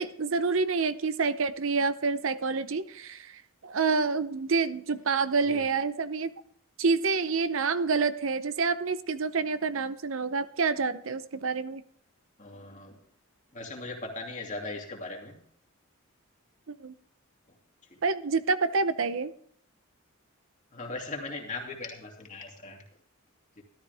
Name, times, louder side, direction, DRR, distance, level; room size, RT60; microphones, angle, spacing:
voice 1, 0.0-6.3 6.8-11.8 16.7-16.9 18.0-19.3, right 4 dB, 65° right, 13 dB, 0.7 m, -28 dB
voice 2, 12.4-13.0 13.5-15.4 17.9-18.0 20.7-22.8 23.6-23.7, left 2 dB, 35° left, 1 dB, 2.6 m, -39 dB
13.5 x 12.5 x 3.5 m, 0.63 s
head